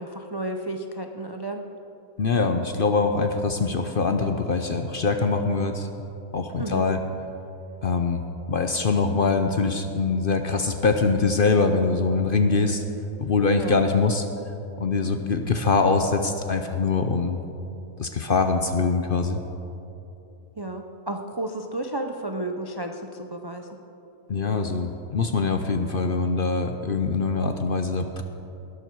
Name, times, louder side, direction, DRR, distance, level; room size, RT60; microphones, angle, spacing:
voice 1, 0.0-1.6 6.6-6.9 13.6-13.8 20.6-23.7, right 1 dB, 35° right, 4 dB, 0.4 m, -32 dB
voice 2, 2.2-5.9 6.3-7.0 7.8-8.2 8.5-12.8 13.2-14.3 14.8-17.4 18.0-19.4 24.3-28.2, left 4 dB, 50° left, 6 dB, 0.7 m, -23 dB
19.0 x 11.5 x 4.6 m, 2.9 s
omnidirectional pair, 1.6 m